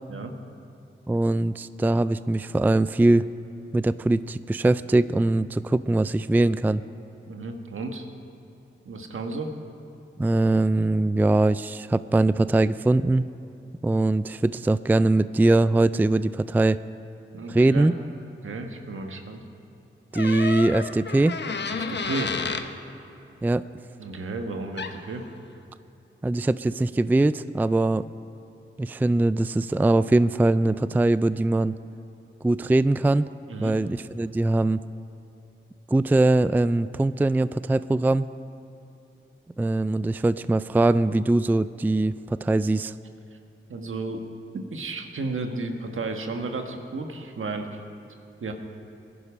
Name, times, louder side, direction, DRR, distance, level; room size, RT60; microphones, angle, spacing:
voice 1, 1.1-3.2 3.7-6.8 10.2-13.3 13.8-16.8 17.5-17.9 20.1-21.4 23.4-23.6 26.2-28.1 28.8-31.8 32.4-33.3 33.6-34.8 35.9-38.3 39.6-42.9, right 2 dB, 10° right, 15 dB, 0.3 m, -22 dB
voice 2, 7.3-8.1 8.8-9.5 17.3-17.9 18.4-19.4 21.7-22.4 24.0-25.2 33.5-33.7 43.7-44.2 44.5-47.8 48.4-48.5, right 3 dB, 70° right, 4 dB, 1.5 m, -33 dB
sound 1, 20.1-22.7 24.8-25.0, left 5 dB, 55° left, 1.0 m, -31 dB
19.0 x 11.0 x 5.1 m, 2.8 s
cardioid pair, 50°, 21 cm